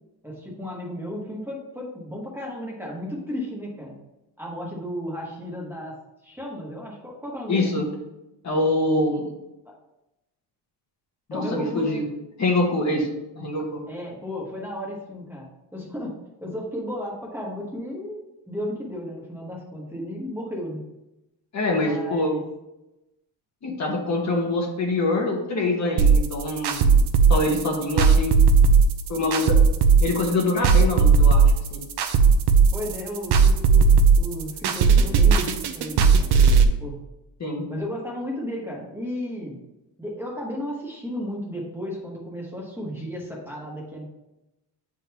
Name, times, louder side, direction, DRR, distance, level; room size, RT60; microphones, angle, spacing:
voice 1, 0.2-3.9 4.4-6.0 6.2-7.8 9.7-9.8 11.3-12.0 13.9-18.2 18.5-20.8 21.8-22.4 32.7-36.3 36.8-37.0 37.7-39.6 40.0-44.1, equal, 5° right, -3 dB, 1.2 m, -34 dB
voice 2, 7.5-7.8 8.4-9.3 11.3-12.0 12.4-13.1 13.4-13.8 21.5-22.3 23.6-26.9 27.3-28.4 29.1-29.6 30.0-31.4 31.7-31.8 37.4-37.7, left 2 dB, 40° left, 0 dB, 1.2 m, -24 dB
sound 1, 26.0-36.6, right 5 dB, 65° right, 0.7 m, -17 dB
8.8 x 3.8 x 2.9 m, 0.94 s
cardioid pair, 145°, 42 cm